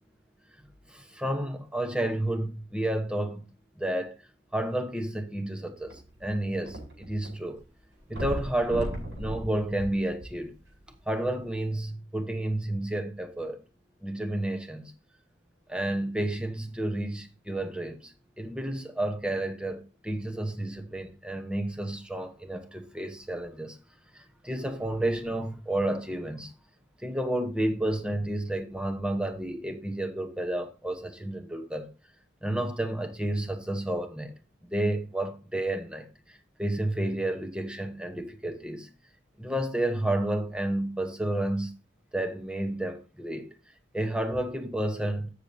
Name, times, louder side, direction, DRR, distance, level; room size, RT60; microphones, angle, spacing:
voice 1, 0.9-3.4 3.8-4.1 4.5-7.6 8.1-10.5 11.1-13.6 14.0-14.9 15.7-23.8 24.1-26.5 27.0-31.9 32.4-38.9 39.4-41.7 42.1-43.5 43.9-45.3, right 1 dB, 5° right, 1.0 m, -31 dB
sound 1, 5.8-7.3 7.6-7.7 8.1-10.7 11.4-11.5, equal, 70° right, 5.6 m, -37 dB
13.0 x 6.7 x 2.8 m
head